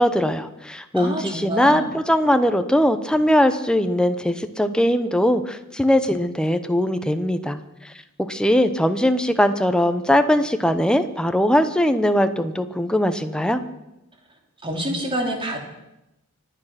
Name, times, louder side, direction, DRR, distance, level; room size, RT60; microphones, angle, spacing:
voice 1, 0.0-7.6 8.2-13.6, equal, 5° left, 9 dB, 0.8 m, -20 dB
voice 2, 0.9-1.8 14.6-15.6, right 1 dB, 25° right, 2 dB, 2.7 m, -27 dB
25.0 x 9.1 x 5.8 m, 0.91 s
head